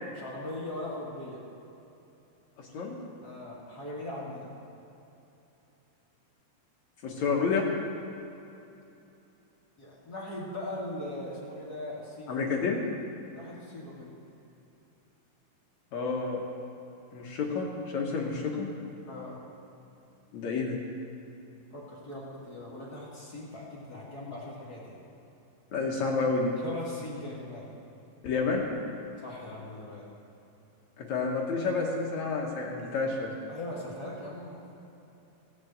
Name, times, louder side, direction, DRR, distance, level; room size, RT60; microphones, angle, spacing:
voice 1, 0.1-1.4 3.2-4.5 9.8-12.4 13.3-14.1 19.0-19.4 21.7-25.0 26.6-27.7 29.2-30.1 33.5-34.6, left 1 dB, 30° left, -6 dB, 2.4 m, -40 dB
voice 2, 2.6-3.0 7.0-7.7 12.3-12.8 15.9-16.5 17.1-17.7 17.9-18.7 20.3-20.8 25.7-26.5 28.2-28.8 31.0-33.3, left 4 dB, 60° left, -1 dB, 2.2 m, -29 dB
16.5 x 7.5 x 7.9 m, 2.9 s
omnidirectional pair, 4.3 m